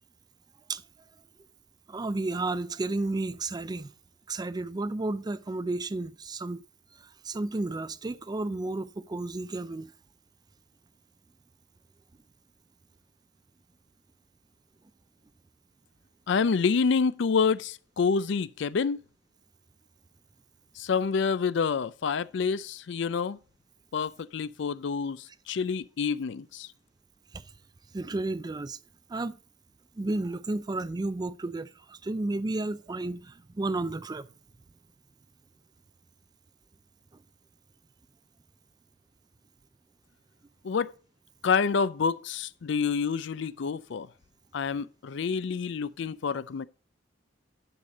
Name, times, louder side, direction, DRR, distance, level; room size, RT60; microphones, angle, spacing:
voice 1, 1.9-3.9 4.3-6.6 7.0-9.9 27.3-27.4 27.9-28.8 29.1-29.4 30.0-34.3, right 2 dB, 20° right, 0.4 m, -32 dB
voice 2, 16.3-19.0 20.8-23.4 23.9-26.7 40.6-40.9 41.4-44.1 44.5-46.7, left 5 dB, 65° left, 0.4 m, -28 dB
11.0 x 6.5 x 4.0 m
head